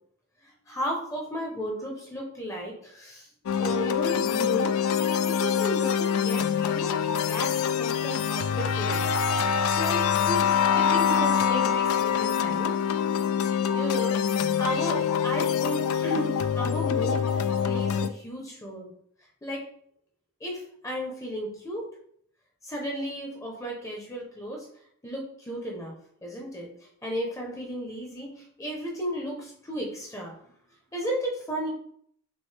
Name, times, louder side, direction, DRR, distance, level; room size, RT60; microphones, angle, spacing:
voice 1, 0.7-3.3 3.6-4.7 5.3-9.1 9.4-12.7 13.7-14.1 14.6-17.2 17.6-18.9 19.4-19.6 20.4-21.9 22.6-24.7 25.0-25.9 26.2-26.7 27.0-28.3 28.6-30.3 30.9-31.7, equal, 15° left, 0 dB, 0.7 m, -34 dB
sound 1, 3.5-18.1, left 7 dB, 75° left, 0.3 m, -25 dB
6.1 x 2.6 x 3.2 m, 0.67 s
head